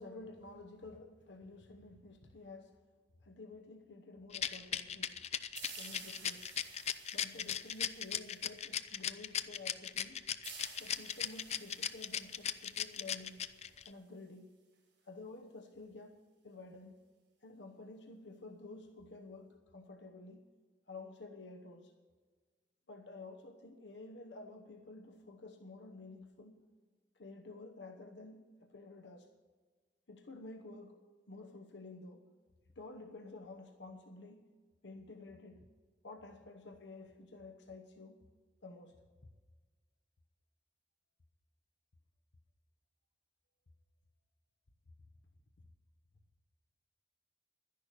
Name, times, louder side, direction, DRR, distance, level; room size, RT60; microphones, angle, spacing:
voice 1, 0.0-2.7 3.2-5.2 5.7-6.5 7.1-10.3 10.8-13.4 13.8-14.5 15.0-17.0 17.4-20.5 20.9-21.9 22.9-26.6 27.2-29.3 30.1-32.3 32.8-34.5 34.8-35.7 36.0-38.3 38.6-39.0, left 2 dB, 80° left, 4 dB, 1.0 m, -51 dB
Rattle, 4.3-13.9, left 9 dB, 35° left, 0.5 m, -37 dB
sound 1, 5.6-8.9 10.4-13.9, right 6 dB, 85° right, 4.9 m, -54 dB
11.5 x 10.5 x 6.6 m, 1.4 s
head